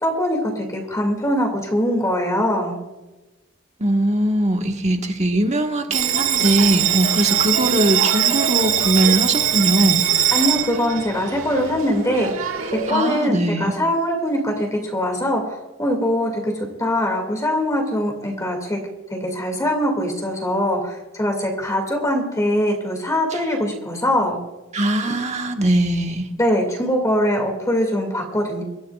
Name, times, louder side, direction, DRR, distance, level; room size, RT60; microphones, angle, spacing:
voice 1, 0.0-2.8 10.3-12.5 12.9-16.3 16.8-18.8 19.1-24.4 25.1-25.2 26.4-28.6, equal, 15° left, 1 dB, 2.3 m, -22 dB
voice 2, 3.8-10.0 12.9-13.7 23.3-23.4 24.7-26.3, right 1 dB, 35° right, 4 dB, 1.4 m, -20 dB
Bell, 5.9-12.9, right 10 dB, 75° right, 1.7 m, -21 dB
24.0 x 14.0 x 2.4 m, 1.1 s
head